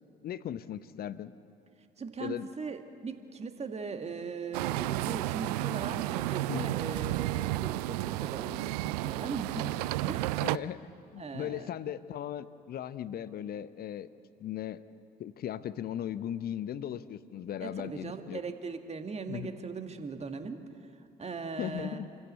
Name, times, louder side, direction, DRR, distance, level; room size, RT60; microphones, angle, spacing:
voice 1, 0.2-1.3 2.2-2.5 6.5-6.7 10.4-10.8 11.1-14.1 14.4-14.8 15.2-18.4 19.3-19.5 21.6-22.1, left 10 dB, 45° left, 15 dB, 0.8 m, -37 dB
voice 2, 2.0-9.8 10.1-10.5 11.2-11.7 17.6-20.9 21.2-22.0, right 4 dB, 30° right, 7 dB, 1.9 m, -39 dB
sound 1, 4.5-10.6, right 17 dB, 70° right, 0.4 m, -32 dB
27.5 x 15.0 x 8.2 m, 2.6 s
figure-of-eight pair, 50°, 21 cm